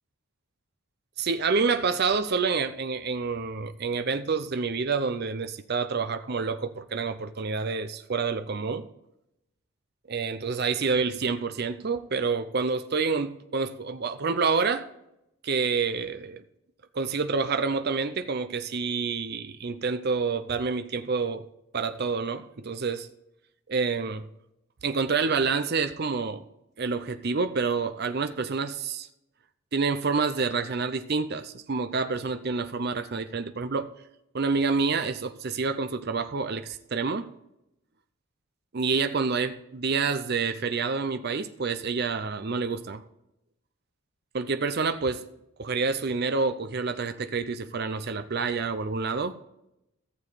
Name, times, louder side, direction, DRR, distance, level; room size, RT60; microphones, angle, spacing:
voice 1, 1.2-8.9 10.1-14.9 15.4-16.4 16.9-21.4 21.7-23.1 23.7-24.3 24.8-26.4 26.8-29.1 29.7-33.9 34.3-37.3 38.7-43.0 44.3-45.2 45.6-49.4, right 4 dB, 45° right, 0.6 m, -28 dB
14.5 x 7.0 x 4.1 m
head